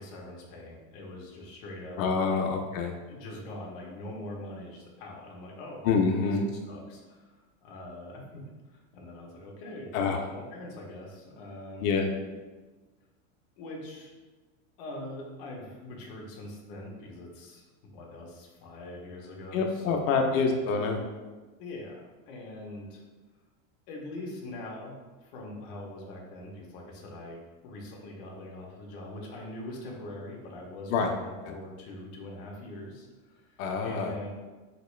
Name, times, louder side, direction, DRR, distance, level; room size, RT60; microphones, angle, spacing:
voice 1, 0.0-2.4 3.1-5.9 6.2-6.3 6.6-12.1 13.6-14.1 14.8-20.4 21.6-23.0 23.9-34.3, left 1 dB, 45° left, -2 dB, 0.7 m, -43 dB
voice 2, 2.0-2.9 5.8-6.5 9.9-10.2 11.8-12.1 19.5-21.0 30.9-31.1 31.4-31.5 33.6-34.1, left 4 dB, 90° left, 2 dB, 0.6 m, -26 dB
2.9 x 2.9 x 3.1 m, 1.3 s
supercardioid pair, 170°, 39 cm